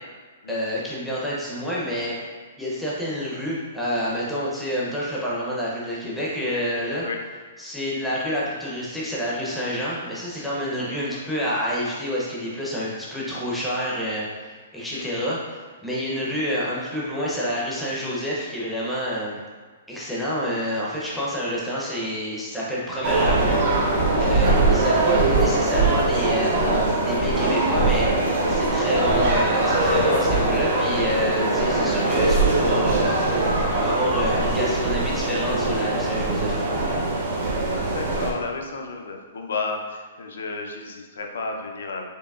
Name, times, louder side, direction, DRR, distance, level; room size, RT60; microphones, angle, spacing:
voice 1, 0.5-2.2 2.6-7.1 7.6-19.4 19.9-23.6 23.9-26.6 27.1-33.2 33.8-36.7, equal, ahead, -7 dB, 0.5 m, -28 dB
voice 2, 10.7-11.3 14.9-15.2 24.5-24.7 37.7-42.1, left 3 dB, 85° left, 2 dB, 0.5 m, -33 dB
sound 1, 23.0-38.3, right 2 dB, 45° right, 0.7 m, -21 dB
4.6 x 2.9 x 2.3 m, 1.5 s
hypercardioid pair, 170°, 0 cm